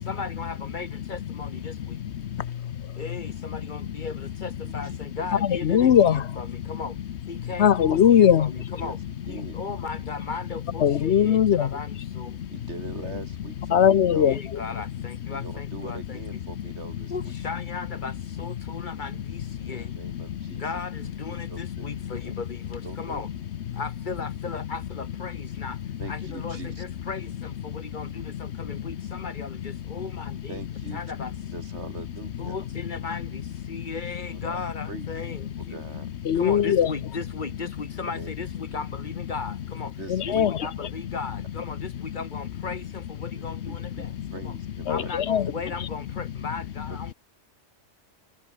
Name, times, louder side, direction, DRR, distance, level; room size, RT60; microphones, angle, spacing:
voice 1, 0.1-2.0 3.0-7.0 7.3-9.0 9.3-12.4 13.0-13.2 14.2-16.4 17.1-19.9 20.6-23.3 23.7-25.8 26.1-30.6 30.9-31.3 32.4-35.8 36.3-39.9 40.2-44.1 44.4-44.6 44.9-47.1, left 4 dB, 40° left, 2.2 m, -37 dB
voice 2, 1.7-3.0 3.5-3.6 3.9-4.0 5.4-6.6 7.4-8.5 10.8-11.7 12.2-12.5 13.7-14.4 18.6-19.0 19.5-20.6 21.4-21.5 22.0-22.1 23.7-23.8 25.9-26.0 27.7-27.8 28.0-29.2 33.7-33.9 35.6-35.7 36.2-36.9 40.1-40.6 43.4-43.6 44.2-44.3 44.9-45.5, left 9 dB, 65° left, 1.0 m, -23 dB
voice 3, 4.6-5.0 8.8-9.6 12.5-14.3 15.3-17.1 19.7-20.8 21.5-22.3 22.8-23.2 26.0-26.8 30.5-31.0 31.5-32.6 34.2-34.6 34.9-35.3 35.6-36.1 38.0-38.3 38.7-38.8 40.0-40.5 43.3-45.1 46.9-47.0, right 3 dB, 65° right, 2.8 m, -42 dB
omnidirectional pair, 1.3 m